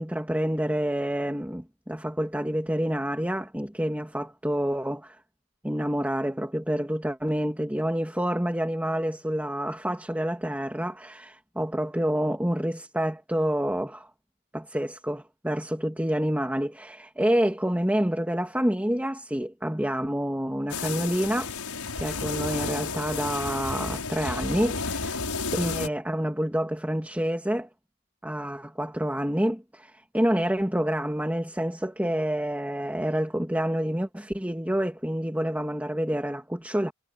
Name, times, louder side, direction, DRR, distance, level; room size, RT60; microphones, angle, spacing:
voice 1, 0.0-5.2 5.6-14.1 14.5-21.5 22.0-25.2 25.5-27.7 28.2-36.9, equal, 5° right, 2.8 m, -28 dB
sound 1, 20.7-25.9, left 4 dB, 85° left, 6.3 m, -32 dB
head